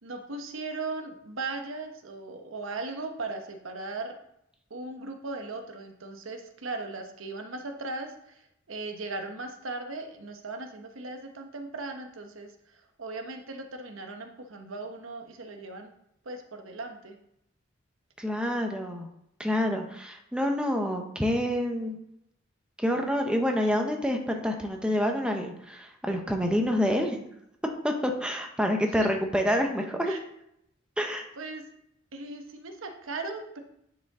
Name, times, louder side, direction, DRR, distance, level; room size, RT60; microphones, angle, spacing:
voice 1, 0.0-4.2 4.7-8.4 8.7-12.5 13.0-15.9 16.2-17.2 29.0-29.1 30.1-30.2 31.4-31.6 32.1-33.6, right 3 dB, 85° right, 5 dB, 1.0 m, -38 dB
voice 2, 18.2-19.1 19.4-21.9 22.8-27.2 27.8-30.2 31.0-31.3, equal, 5° right, 3 dB, 0.8 m, -27 dB
9.5 x 5.0 x 3.6 m, 0.76 s
head